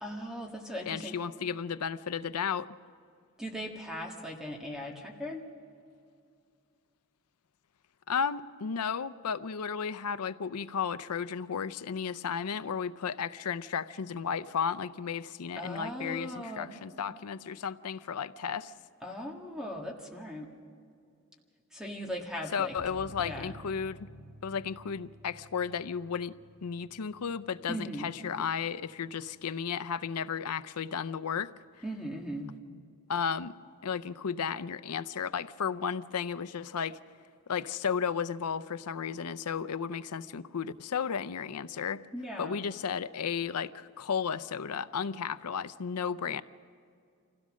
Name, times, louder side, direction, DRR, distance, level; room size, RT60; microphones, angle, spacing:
voice 1, 0.0-1.2 3.4-5.4 15.6-16.7 19.0-20.5 21.7-22.7 23.2-23.5 27.7-28.1 31.8-32.5 42.1-42.6, equal, 5° right, 1.7 m, -38 dB
voice 2, 0.9-2.7 8.1-18.7 22.5-24.1 24.4-26.3 26.6-31.5 33.1-33.5 33.8-37.0 37.5-42.0 42.4-46.4, left 6 dB, 90° left, 0.6 m, -34 dB
sound 1, 22.8-29.9 30.1-30.2 30.6-30.7, equal, 30° left, 2.2 m, -53 dB
26.0 x 16.5 x 6.3 m
head